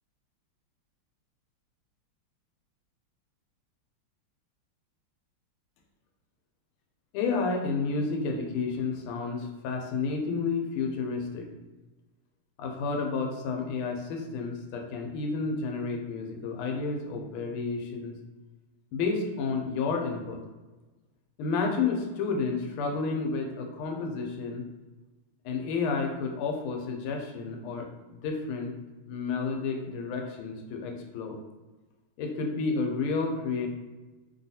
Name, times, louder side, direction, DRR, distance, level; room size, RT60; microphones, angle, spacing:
voice 1, 7.1-11.5 12.6-18.1 18.9-20.4 21.4-24.6 25.5-27.9 28.2-28.7 29.1-31.4 32.2-33.7, left 4 dB, 80° left, 2 dB, 1.4 m, -31 dB
3.3 x 2.3 x 2.7 m, 1.2 s
omnidirectional pair, 2.4 m